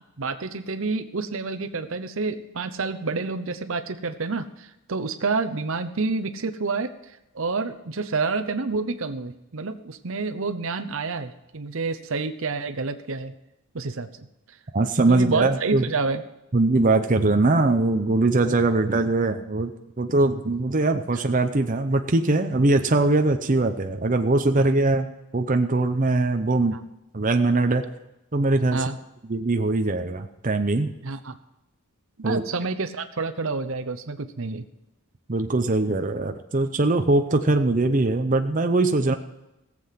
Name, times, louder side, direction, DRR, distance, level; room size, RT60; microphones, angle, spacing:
voice 1, 0.2-13.3 13.7-14.3 15.1-16.2 24.6-24.7 26.7-26.8 28.7-29.0 31.0-31.4 32.2-34.6, right 4 dB, 60° right, 9 dB, 0.8 m, -29 dB
voice 2, 14.7-15.9 16.5-19.7 20.0-26.8 27.1-27.8 28.3-28.8 29.3-30.9 32.2-32.4 35.3-39.1, right 2 dB, 35° right, 6 dB, 0.7 m, -21 dB
17.5 x 7.7 x 5.8 m, 0.91 s
head